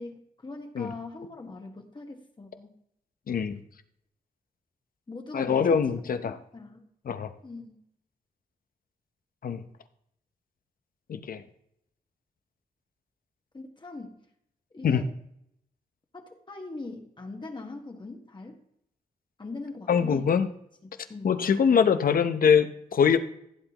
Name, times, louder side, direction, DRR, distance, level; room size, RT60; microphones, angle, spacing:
voice 1, 0.0-2.7 5.1-5.8 6.3-6.8 7.4-7.8 13.5-14.2 14.7-15.1 16.1-18.6 19.4-20.3 20.8-21.4, left 3 dB, 30° left, 2 dB, 1.4 m, -41 dB
voice 2, 3.3-3.6 5.3-6.4 7.1-7.3 9.4-9.6 11.1-11.4 14.8-15.0 19.9-20.5 21.2-23.2, left 7 dB, 70° left, 10 dB, 0.8 m, -23 dB
15.5 x 7.9 x 3.0 m, 0.73 s
cardioid pair, 75°, 15 cm